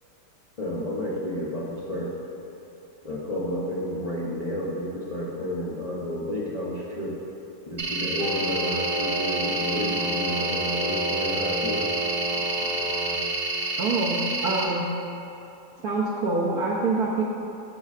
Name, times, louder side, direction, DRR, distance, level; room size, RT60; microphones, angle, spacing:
voice 1, 0.6-2.1 3.0-7.1 7.7-11.8 12.6-12.7, equal, 60° left, -6 dB, 0.3 m, -31 dB
sound 1, 7.8-14.6, right 2 dB, 40° right, 0.8 m, -29 dB
sound 2, 8.2-13.2, equal, 85° left, 1.4 m, -31 dB
voice 2, 13.8-14.9 15.8-17.2, right 3 dB, 70° right, -3 dB, 1.0 m, -25 dB
12.0 x 5.2 x 2.4 m, 2.8 s
omnidirectional pair, 1.9 m